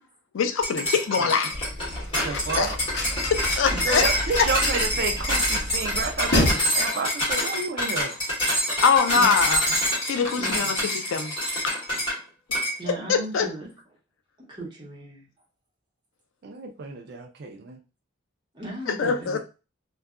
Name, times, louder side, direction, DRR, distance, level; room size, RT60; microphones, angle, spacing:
voice 1, 0.3-1.7 2.2-2.7 3.6-4.0 8.8-9.6 10.1-10.8 11.1-11.3 11.6-11.8 12.9-13.5 19.0-19.4, left 5 dB, 75° left, 0.4 m, -23 dB
sound 1, 0.6-12.2 12.5-12.8, equal, 25° left, 1.5 m, -26 dB
sound 2, 1.5-6.5, left 1 dB, 55° left, 0.7 m, -29 dB
voice 2, 2.2-2.8 3.8-8.2 16.4-17.8, right 4 dB, 50° right, 0.3 m, -30 dB
voice 3, 10.3-10.8 12.8-13.7 14.4-15.3 18.5-19.4, right 1 dB, 20° right, 0.9 m, -36 dB
2.6 x 2.3 x 2.4 m
head